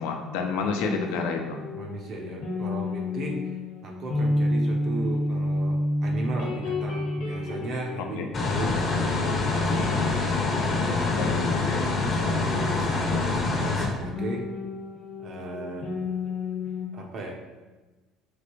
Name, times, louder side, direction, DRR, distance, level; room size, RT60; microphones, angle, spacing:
voice 1, 0.0-1.6 8.2-8.3 11.1-11.9, left 5 dB, 90° left, 3 dB, 0.4 m, -29 dB
voice 2, 0.6-1.1 1.7-3.6 3.8-10.0 10.6-10.9 11.3-11.4 12.0-14.5 15.2-15.9 16.9-17.4, right 2 dB, 50° right, 0 dB, 0.6 m, -36 dB
sound 1, 0.8-9.2 9.5-13.0 14.1-16.8, left 1 dB, 70° left, 0.9 m, -31 dB
sound 2, 8.3-13.9, left 3 dB, 35° left, 0.6 m, -25 dB
3.2 x 2.5 x 3.0 m, 1.2 s
cardioid pair, 110°, 0 cm